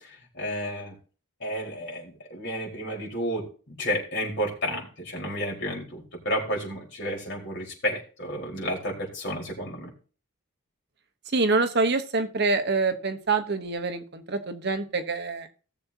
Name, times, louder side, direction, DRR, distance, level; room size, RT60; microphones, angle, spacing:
voice 1, 0.3-0.9 1.4-9.9, equal, 55° left, -3 dB, 4.5 m, -31 dB
voice 2, 11.3-15.5, right 3 dB, 50° right, 8 dB, 1.0 m, -26 dB
18.0 x 7.1 x 2.8 m, 0.38 s
head